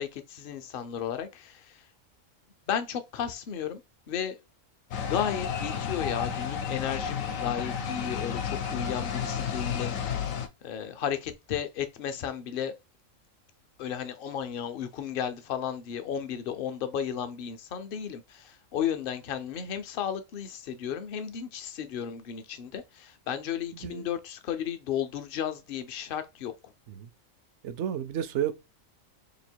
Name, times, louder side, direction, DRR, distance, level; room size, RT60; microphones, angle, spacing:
voice 1, 0.0-1.8 2.7-3.8 4.1-4.4 5.0-10.0 10.6-12.7 13.8-26.5, left 8 dB, 55° left, 0.7 m, -34 dB
sound 1, 4.9-10.5, left 7 dB, 80° left, 1.1 m, -32 dB
voice 2, 27.6-28.5, right 10 dB, 65° right, 0.8 m, -31 dB
2.9 x 2.5 x 4.3 m
omnidirectional pair, 1.4 m